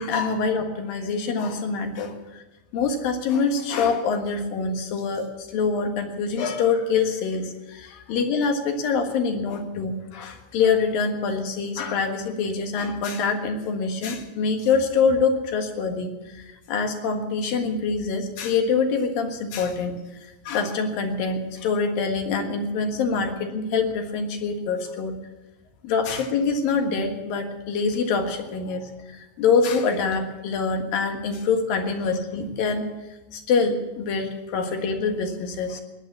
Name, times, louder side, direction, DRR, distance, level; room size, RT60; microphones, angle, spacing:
voice 1, 0.0-2.4 2.7-19.9 20.5-25.1 25.8-32.9 33.3-35.8, left 5 dB, 90° left, 4 dB, 3.4 m, -25 dB
17.5 x 11.0 x 7.5 m, 1.0 s
omnidirectional pair, 3.9 m